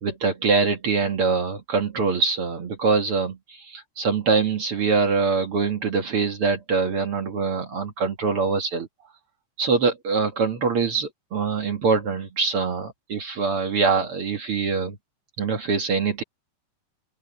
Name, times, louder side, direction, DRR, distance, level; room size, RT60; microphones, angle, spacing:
voice 1, 0.0-8.9 9.6-15.0 15.4-16.2, right 4 dB, 50° right, 2.0 m, -24 dB
omnidirectional pair, 4.0 m